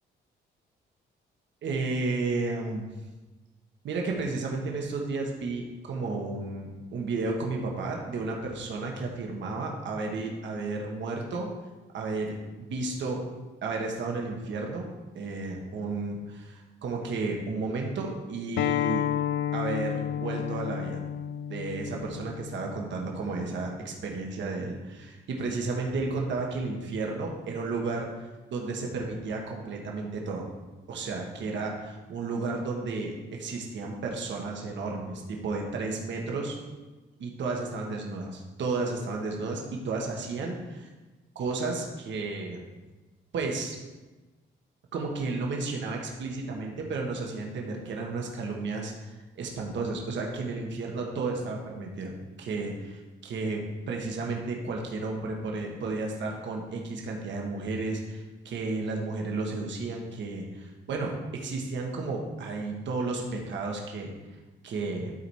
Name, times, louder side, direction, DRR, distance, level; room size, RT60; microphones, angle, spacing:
voice 1, 1.6-2.9 3.8-11.5 11.9-13.2 13.6-14.8 15.1-19.1 19.5-21.0 21.5-30.5 30.9-36.6 37.2-40.9 41.3-42.6 43.3-43.8 44.9-64.1 64.6-65.1, right 3 dB, 65° right, 0 dB, 1.5 m, -33 dB
Acoustic guitar, 18.6-23.8, left 10 dB, 70° left, 0.4 m, -32 dB
11.5 x 4.2 x 4.7 m, 1.2 s
cardioid pair, 90°, 20 cm